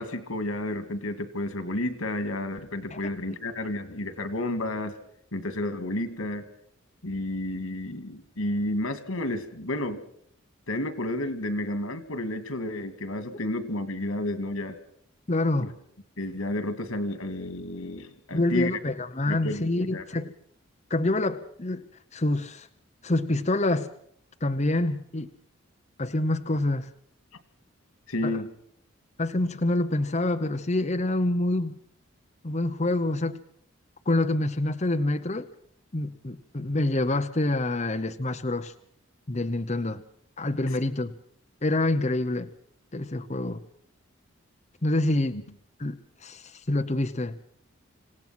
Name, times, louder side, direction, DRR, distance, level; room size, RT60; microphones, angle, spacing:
voice 1, 0.0-4.9 5.3-6.5 7.0-10.0 10.7-14.8 15.6-15.7 16.2-18.7 19.3-20.0 28.1-28.5 45.3-45.4, left 1 dB, 90° left, 11 dB, 2.3 m, -31 dB
voice 2, 15.3-15.7 18.3-20.3 20.9-21.8 22.1-22.7 23.0-23.9 24.4-25.3 26.0-26.9 28.2-28.4 29.2-31.7 32.4-33.4 34.1-35.5 35.9-38.7 39.3-40.0 40.4-41.2 41.6-42.5 42.9-43.6 44.8-45.4 45.8-47.4, left 2 dB, 35° left, 6 dB, 0.8 m, -26 dB
27.0 x 17.0 x 6.0 m, 0.65 s
head